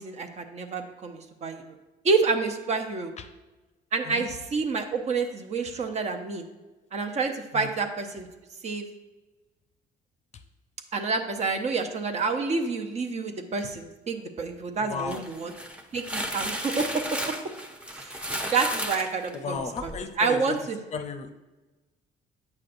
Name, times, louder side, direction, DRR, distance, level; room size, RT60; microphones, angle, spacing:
voice 1, 0.0-1.7 2.0-3.1 3.9-6.4 6.9-8.3 8.6-8.9 10.9-15.5 15.9-17.4 17.9-18.2 18.5-19.9 20.2-20.8, right 4 dB, 40° right, 5 dB, 0.7 m, -28 dB
voice 2, 14.8-15.2 19.3-20.6 20.9-21.3, left 5 dB, 40° left, 8 dB, 0.6 m, -34 dB
sound 1, 14.9-20.0, equal, 5° right, 0.7 m, -34 dB
8.6 x 6.3 x 2.5 m, 1.1 s
cardioid pair, 110°, 17 cm